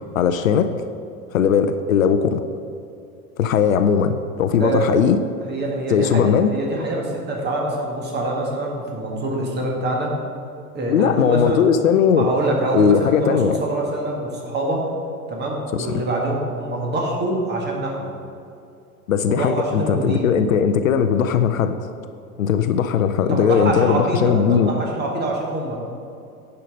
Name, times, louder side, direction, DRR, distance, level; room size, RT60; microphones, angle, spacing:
voice 1, 0.1-0.7 1.3-2.4 3.4-5.2 5.9-6.5 10.9-12.3 12.7-13.6 15.7-15.9 19.1-21.8 22.4-24.7, left 7 dB, 65° left, 10 dB, 0.6 m, -18 dB
voice 2, 4.6-4.9 5.4-10.2 10.7-11.7 12.1-14.9 15.3-18.1 19.3-20.3 23.3-25.8, right 2 dB, 20° right, -1 dB, 1.9 m, -25 dB
10.0 x 5.6 x 5.1 m, 2.6 s
figure-of-eight pair, 85°, 45 cm